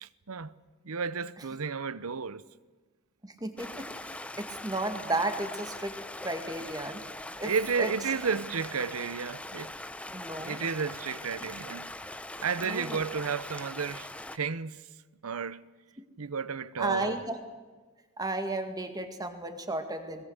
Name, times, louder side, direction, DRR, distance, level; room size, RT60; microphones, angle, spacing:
voice 1, 0.0-0.5 0.8-2.4 7.4-9.7 10.4-11.9 12.4-14.8 15.2-15.6 16.2-17.2, right 5 dB, 85° right, 0.8 m, -32 dB
voice 2, 3.2-3.9 4.4-5.9 6.2-7.0 7.4-7.5 7.8-7.9 10.1-10.6 12.6-13.0 16.8-17.4 18.2-20.2, right 2 dB, 15° right, 2.0 m, -33 dB
Stream, 3.6-14.4, left 1 dB, 5° left, 0.6 m, -41 dB
22.0 x 21.5 x 8.1 m
head